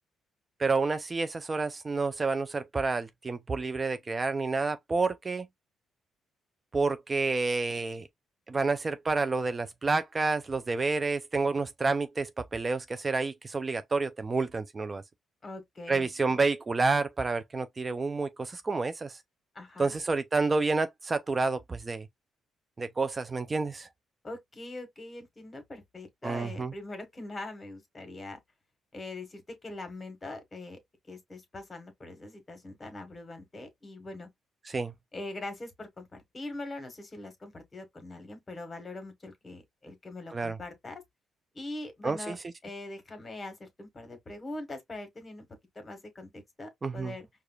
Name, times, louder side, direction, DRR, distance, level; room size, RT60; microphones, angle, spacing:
voice 1, 0.6-5.5 6.7-8.1 8.5-15.0 15.9-19.2 19.8-22.1 22.8-23.9 26.2-26.7 34.6-34.9 40.3-40.6 42.0-42.4 46.8-47.1, right 3 dB, 30° right, 0.4 m, -29 dB
voice 2, 15.4-16.4 19.5-19.9 24.2-28.4 28.9-30.8 31.1-34.3 35.1-41.0 41.5-42.3 42.6-45.4 45.7-47.3, left 2 dB, 30° left, 1.5 m, -42 dB
4.8 x 2.3 x 2.3 m
cardioid pair, 90°, 0 cm